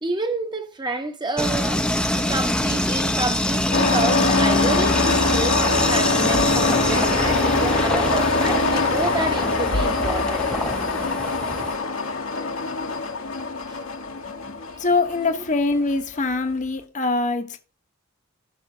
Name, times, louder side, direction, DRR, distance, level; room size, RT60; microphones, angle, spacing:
voice 1, 0.0-1.9 2.2-10.5 13.7-13.8 15.3-15.4, right 2 dB, 20° right, 1.1 m, -29 dB
sound 1, 1.4-11.8, left 1 dB, 5° left, 0.7 m, -24 dB
sound 2, 3.7-16.4, left 3 dB, 65° left, 1.3 m, -23 dB
voice 2, 14.8-17.6, left 3 dB, 35° left, 1.0 m, -23 dB
15.5 x 5.8 x 2.7 m
head